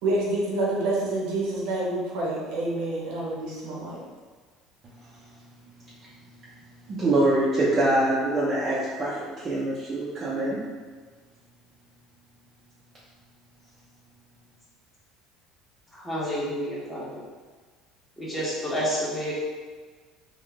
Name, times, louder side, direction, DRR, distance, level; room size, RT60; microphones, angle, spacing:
voice 1, 0.0-4.0, right 2 dB, 80° right, -4 dB, 1.0 m, -27 dB
voice 2, 6.9-10.6, right 1 dB, 35° right, -8 dB, 0.7 m, -24 dB
voice 3, 16.0-17.2 18.2-19.4, equal, 10° left, -8 dB, 1.4 m, -29 dB
3.7 x 2.4 x 3.5 m, 1.5 s
cardioid pair, 120°, 0 cm